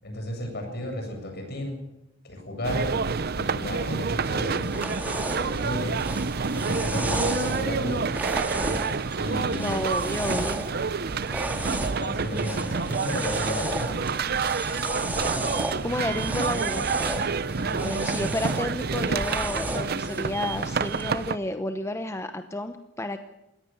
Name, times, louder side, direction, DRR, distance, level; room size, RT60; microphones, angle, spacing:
voice 1, 0.0-1.8 2.2-6.0 6.5-8.1 9.2-9.9 12.0-13.9 17.6-17.9, left 1 dB, 60° left, 4 dB, 7.6 m, -33 dB
sound 1, 2.6-21.4, right 5 dB, 55° right, 0.7 m, -28 dB
sound 2, 4.2-21.2, right 1 dB, 10° right, 2.0 m, -34 dB
voice 2, 9.5-10.6 15.8-16.9 17.8-23.2, left 1 dB, 15° left, 8 dB, 1.0 m, -31 dB
22.5 x 17.5 x 7.2 m, 0.91 s
head